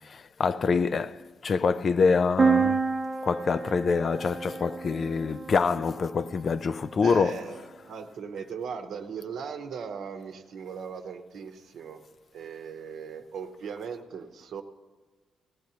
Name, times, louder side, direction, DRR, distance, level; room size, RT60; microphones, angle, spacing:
voice 1, 0.0-2.9 3.2-7.4, left 5 dB, 45° left, 0.3 m, -26 dB
sound 1, 2.4-6.1, right 5 dB, 30° right, 0.5 m, -28 dB
voice 2, 7.0-12.0 12.3-14.6, right 6 dB, 75° right, 0.8 m, -38 dB
18.0 x 13.5 x 2.8 m
cardioid pair, 105°, 0 cm